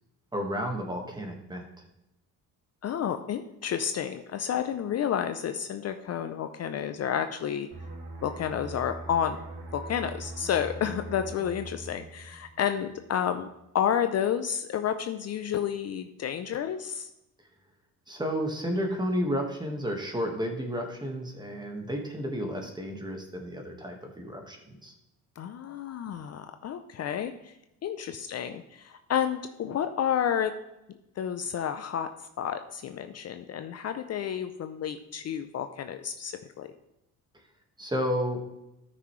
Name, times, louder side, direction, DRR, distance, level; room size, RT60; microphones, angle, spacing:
voice 1, 0.3-1.6 18.1-24.9 37.8-38.4, equal, 10° right, 2 dB, 1.5 m, -32 dB
voice 2, 2.8-7.7 8.2-9.4 9.7-13.5 13.7-17.1 25.4-27.5 27.8-30.5 31.2-32.1 32.4-36.7, left 9 dB, 45° left, 8 dB, 0.5 m, -30 dB
sound 1, 7.7-13.1 13.4-13.7, right 2 dB, 80° right, 2.3 m, -42 dB
13.5 x 6.0 x 3.2 m, 0.88 s
cardioid pair, 115°, 36 cm